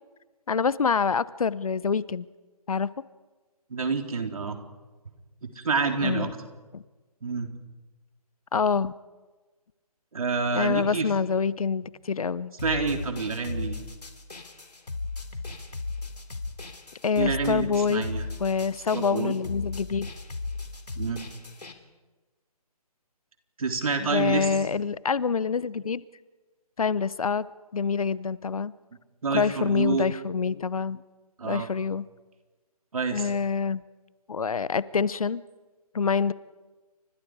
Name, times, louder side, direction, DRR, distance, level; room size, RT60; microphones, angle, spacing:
voice 1, 0.5-2.3 2.7-2.9 6.0-6.3 6.7-6.8 8.5-8.9 10.5-12.5 17.0-18.1 18.4-20.1 24.0-26.0 26.8-27.5 27.7-28.7 29.3-31.0 31.4-32.0 33.1-33.8 34.3-35.4 35.9-36.3, left 5 dB, 60° left, 19 dB, 0.9 m, -26 dB
voice 2, 3.7-4.6 5.4-6.3 7.2-7.5 10.1-11.1 12.6-13.8 17.1-18.2 18.9-19.4 21.0-21.2 23.6-24.5 29.2-30.1 31.4-31.7 32.9-33.3, right 4 dB, 60° right, 4 dB, 3.8 m, -28 dB
sound 1, 12.6-21.7, left 3 dB, 85° left, 3.3 m, -36 dB
30.0 x 25.5 x 4.9 m, 1.3 s
figure-of-eight pair, 160°, 20 cm